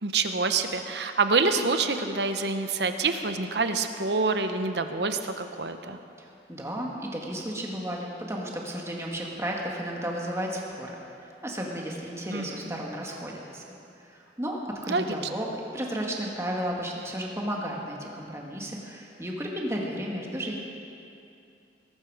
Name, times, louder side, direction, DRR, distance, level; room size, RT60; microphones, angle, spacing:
voice 1, 0.0-6.0 12.3-12.5 14.9-15.0, right 4 dB, 70° right, 8 dB, 1.0 m, -26 dB
voice 2, 6.2-11.0 11.2-13.6 14.0-20.6, equal, 15° right, -1 dB, 1.9 m, -33 dB
21.0 x 12.0 x 5.0 m, 2.6 s
head